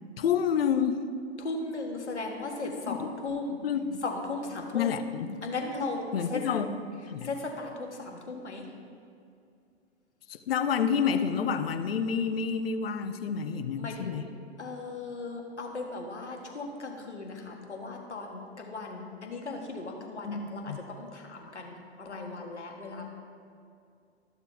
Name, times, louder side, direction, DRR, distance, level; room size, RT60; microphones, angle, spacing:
voice 1, 0.2-1.0 2.7-3.0 3.6-4.0 4.7-5.3 6.1-6.7 7.1-7.3 10.3-14.2 20.2-20.8, left 7 dB, 60° left, 9 dB, 0.7 m, -29 dB
voice 2, 1.4-3.6 4.0-4.9 5.4-6.4 7.2-8.7 13.8-14.3 14.6-23.1, left 3 dB, 80° left, 1 dB, 1.6 m, -37 dB
13.5 x 6.7 x 3.4 m, 2.4 s
figure-of-eight pair, 105°, 34 cm